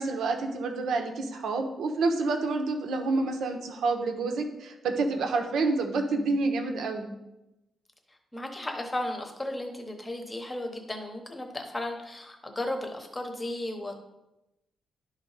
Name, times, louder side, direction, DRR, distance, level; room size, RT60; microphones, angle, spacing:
voice 1, 0.0-7.1, right 3 dB, 80° right, 5 dB, 1.0 m, -28 dB
voice 2, 8.1-14.0, left 1 dB, 15° left, 4 dB, 0.9 m, -35 dB
11.5 x 4.0 x 4.0 m, 0.93 s
wide cardioid pair, 180°, 0 cm